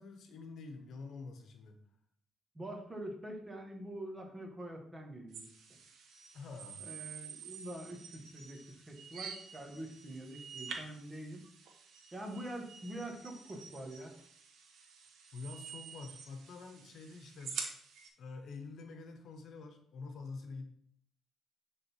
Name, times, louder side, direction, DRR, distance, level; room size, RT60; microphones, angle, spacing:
voice 1, 0.0-1.8 6.3-6.9 15.3-17.5 18.2-20.7, left 4 dB, 70° left, 6 dB, 1.2 m, -47 dB
voice 2, 2.5-5.5 6.8-11.5 12.1-14.1, right 1 dB, 20° right, 2 dB, 2.0 m, -45 dB
sound 1, 5.3-18.1, right 6 dB, 80° right, 1.4 m, -48 dB
9.8 x 4.0 x 4.6 m, 0.62 s
cardioid pair, 90°, 0 cm